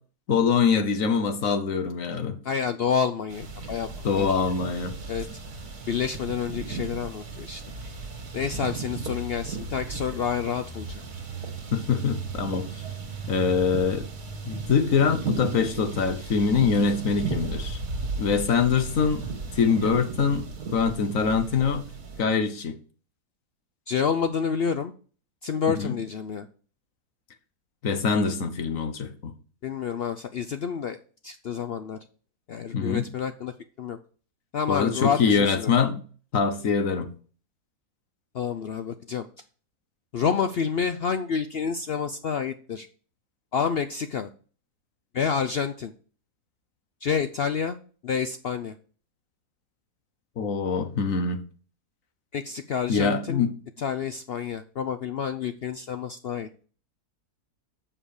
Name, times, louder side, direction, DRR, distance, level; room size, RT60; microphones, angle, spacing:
voice 1, 0.3-2.4 4.0-4.9 11.7-12.7 13.3-14.1 14.5-17.8 18.2-19.2 19.5-20.4 20.7-21.8 22.2-22.7 25.7-25.9 27.8-29.3 32.7-33.1 34.7-35.9 36.3-37.1 50.4-51.4 52.9-53.5, left 5 dB, 60° left, 1.4 m, -24 dB
voice 2, 2.4-4.4 5.1-5.2 5.9-7.6 8.3-11.0 23.9-24.9 25.4-26.5 29.6-31.0 31.2-32.0 32.5-33.5 33.8-34.0 34.5-35.7 38.3-39.3 40.1-42.9 43.5-44.3 45.1-45.9 47.0-47.8 48.0-48.7 52.3-53.4 53.8-56.6, left 6 dB, 80° left, 0.5 m, -28 dB
sound 1, 3.3-22.2, right 4 dB, 70° right, 2.2 m, -35 dB
7.4 x 5.5 x 6.5 m
omnidirectional pair, 1.7 m